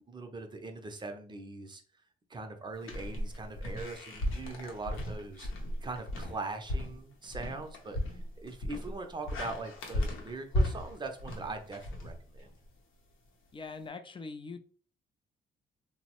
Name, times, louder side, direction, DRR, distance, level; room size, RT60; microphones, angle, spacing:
voice 1, 0.1-1.8 2.3-12.5, right 3 dB, 25° right, 5 dB, 0.5 m, -41 dB
sound 1, 2.8-12.7, equal, 85° left, 0.7 m, -35 dB
voice 2, 13.5-14.6, left 4 dB, 25° left, 8 dB, 0.3 m, -42 dB
2.9 x 2.0 x 2.9 m, 0.43 s
cardioid pair, 90°, 20 cm